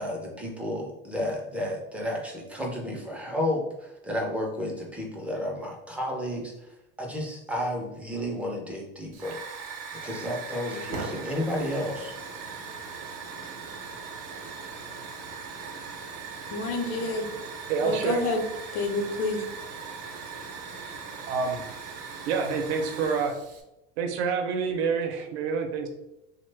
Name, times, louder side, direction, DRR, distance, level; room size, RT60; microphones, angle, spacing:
voice 1, 0.0-9.4 9.9-12.2, left 1 dB, 5° right, 0.3 m, -32 dB
Hiss / Fire, 9.1-23.6, right 5 dB, 50° right, 0.6 m, -39 dB
voice 2, 16.5-17.3 17.8-18.4 18.7-19.4, left 3 dB, 65° left, 0.7 m, -28 dB
voice 3, 17.7-18.2 21.3-21.6 22.3-23.3 24.0-25.9, right 5 dB, 90° right, 0.6 m, -27 dB
3.1 x 2.1 x 3.2 m
supercardioid pair, 145°, 31 cm